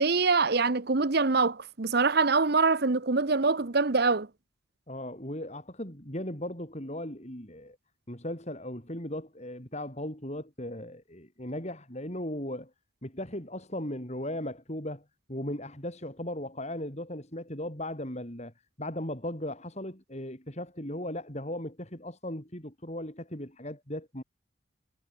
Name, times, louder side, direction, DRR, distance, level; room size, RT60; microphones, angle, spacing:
voice 1, 0.0-4.3, right 4 dB, 50° right, 0.9 m, -24 dB
voice 2, 4.9-7.8 8.1-12.7 13.0-18.5 18.8-24.2, left 1 dB, 35° left, 5.1 m, -37 dB
head